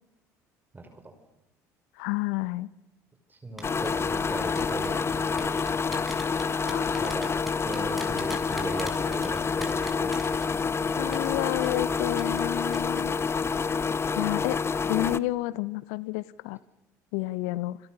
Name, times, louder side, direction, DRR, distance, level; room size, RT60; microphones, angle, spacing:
voice 1, 0.7-1.1 3.3-5.6 7.0-7.3 7.6-11.2, right 2 dB, 20° right, 7 dB, 5.8 m, -39 dB
voice 2, 2.0-2.7 6.7-7.2 11.0-13.2 14.1-16.6 17.1-17.8, left 18 dB, 70° left, 19 dB, 0.9 m, -30 dB
sound 1, 3.6-15.2, left 5 dB, 30° left, 1.1 m, -28 dB
sound 2, 3.6-3.9 4.6-10.8 11.1-11.3 11.6-11.8 12.2-12.5 12.7-13.0 13.3-13.5, equal, ahead, 7.6 m, -40 dB
28.0 x 27.0 x 6.8 m, 0.92 s
hypercardioid pair, 60°, 9 cm